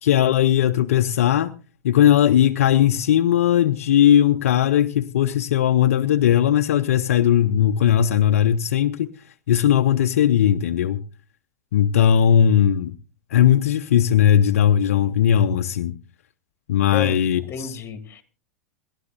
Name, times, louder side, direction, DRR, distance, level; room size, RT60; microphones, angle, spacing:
voice 1, 0.0-1.5 1.8-9.1 9.5-11.0 11.7-12.9 13.3-16.0 16.7-17.8, left 10 dB, 70° left, 0.7 m, -18 dB
voice 2, 16.9-18.2, left 8 dB, 25° left, 2.0 m, -32 dB
27.0 x 11.5 x 2.6 m
hypercardioid pair, 95°, 8 cm